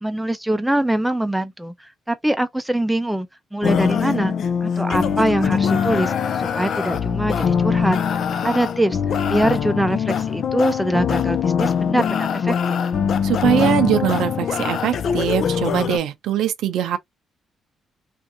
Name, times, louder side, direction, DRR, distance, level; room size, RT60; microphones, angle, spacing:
voice 1, 0.0-3.3 3.5-4.3 4.6-6.1 6.6-8.0 8.4-9.0 9.3-12.8, right 1 dB, 5° right, 0.5 m, -23 dB
sound 1, 3.6-16.0, left 7 dB, 60° left, 0.4 m, -22 dB
voice 2, 13.2-17.0, right 11 dB, 85° right, 0.5 m, -21 dB
2.7 x 2.5 x 2.7 m
cardioid pair, 90°, 0 cm